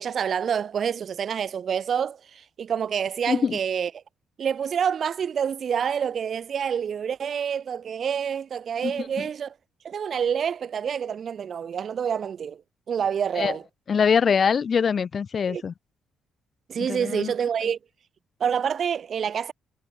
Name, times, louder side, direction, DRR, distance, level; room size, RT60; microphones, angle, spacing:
voice 1, 0.0-4.0 4.4-9.5 9.8-12.6 12.9-13.6 15.5-15.6 16.7-17.8 18.4-19.5, right 7 dB, 50° right, 5.9 m, -27 dB
voice 2, 3.3-3.6 8.8-9.3 13.4-13.6 13.9-15.7 16.9-17.3, left 6 dB, 45° left, 7.8 m, -23 dB
figure-of-eight pair, 45°, 0 cm